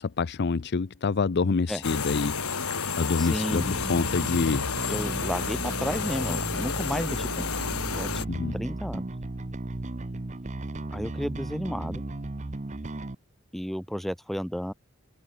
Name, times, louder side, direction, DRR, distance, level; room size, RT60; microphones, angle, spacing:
voice 1, 0.0-4.7 8.3-8.5, left 4 dB, 50° left, 0.5 m, -27 dB
sound 1, 1.8-8.2, left 5 dB, 85° left, 3.6 m, -31 dB
voice 2, 3.2-3.7 4.9-7.5 7.9-8.1 8.5-9.1 10.9-12.0 13.5-14.7, equal, ahead, 2.4 m, -32 dB
Bass guitar, 3.6-13.2, right 2 dB, 35° right, 0.8 m, -35 dB
head